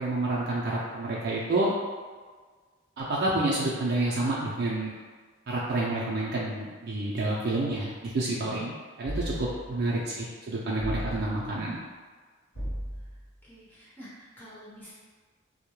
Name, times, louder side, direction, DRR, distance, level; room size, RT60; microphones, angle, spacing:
voice 1, 0.0-1.7 3.0-4.9 5.5-8.7 9.0-11.8, right 2 dB, 55° right, -6 dB, 0.4 m, -29 dB
sound 1, 9.0-9.8 10.8-11.6 12.5-13.3, equal, 90° left, 1.1 m, -35 dB
voice 2, 13.4-14.9, equal, 10° left, -10 dB, 0.7 m, -49 dB
2.2 x 2.0 x 2.9 m, 1.5 s
head